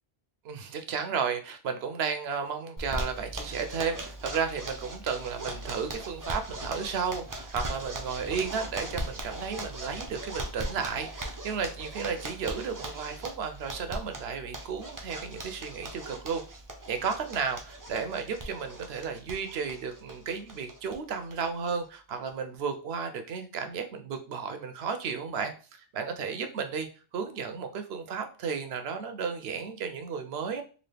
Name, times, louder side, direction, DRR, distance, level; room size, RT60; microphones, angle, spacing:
voice 1, 0.4-16.4 16.9-26.9 27.1-30.6, right 6 dB, 70° right, 7 dB, 0.8 m, -33 dB
Zipper (clothing), 2.8-21.0 21.3-21.4 21.7-21.8 22.1-22.5, right 1 dB, 25° right, 0.5 m, -39 dB
4.0 x 2.4 x 3.3 m, 0.37 s
omnidirectional pair, 1.1 m